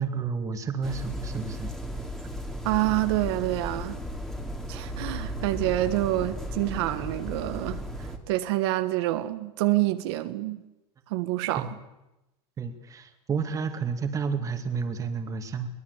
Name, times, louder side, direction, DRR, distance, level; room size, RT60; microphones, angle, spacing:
voice 1, 0.0-1.7 4.4-4.5 11.5-11.7 12.6-15.7, right 5 dB, 25° right, 2.3 m, -31 dB
sound 1, 0.8-8.2, equal, 5° left, 2.6 m, -35 dB
voice 2, 2.6-4.0 4.7-10.6 11.1-11.7, right 16 dB, 75° right, 1.3 m, -27 dB
23.5 x 19.0 x 8.2 m
supercardioid pair, 140°, 14 cm